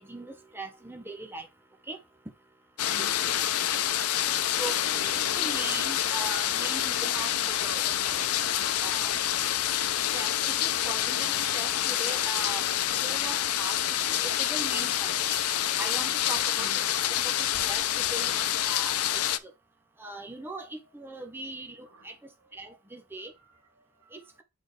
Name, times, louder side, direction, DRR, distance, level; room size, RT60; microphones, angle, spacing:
voice 1, 0.0-1.5 1.9-2.0 4.6-8.3 8.8-9.4 10.1-13.8 14.1-15.1 15.8-17.3 17.6-19.5 20.0-22.1 22.5-23.3 24.1-24.4, right 2 dB, 10° right, 0.9 m, -40 dB
sound 1, 2.8-19.4, left 11 dB, 90° left, 0.6 m, -27 dB
voice 2, 2.9-3.5 16.6-16.9 21.8-22.2 23.4-24.3, left 1 dB, 85° right, 1.5 m, -49 dB
8.3 x 4.4 x 3.2 m
head